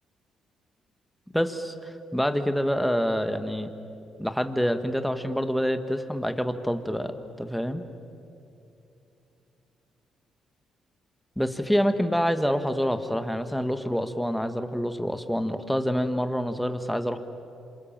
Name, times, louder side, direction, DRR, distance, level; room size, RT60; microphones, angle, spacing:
voice 1, 1.3-3.7 4.2-7.8 11.4-17.2, equal, ahead, 8 dB, 1.6 m, -27 dB
28.5 x 26.5 x 7.4 m, 2.8 s
cardioid pair, 90°, 0 cm